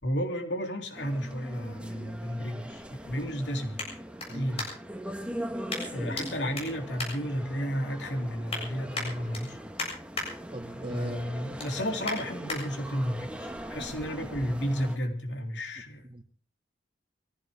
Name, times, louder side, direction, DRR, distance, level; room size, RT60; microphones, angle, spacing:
voice 1, 0.0-3.8 4.3-4.7 5.9-9.6 10.9-16.1, equal, 75° left, 3 dB, 3.4 m, -32 dB
sound 1, 0.9-15.0, equal, 5° right, 1.5 m, -41 dB
sound 2, 3.7-5.0 5.7-6.3 6.5-7.8 8.2-8.6 8.9-10.3 10.7-11.0 11.3-12.6 13.1-13.2, left 3 dB, 35° left, 7.5 m, -38 dB
voice 2, 10.5-11.2 16.1-16.2, right 1 dB, 30° right, 5 dB, 2.2 m, -38 dB
24.0 x 15.5 x 3.7 m, 0.40 s
head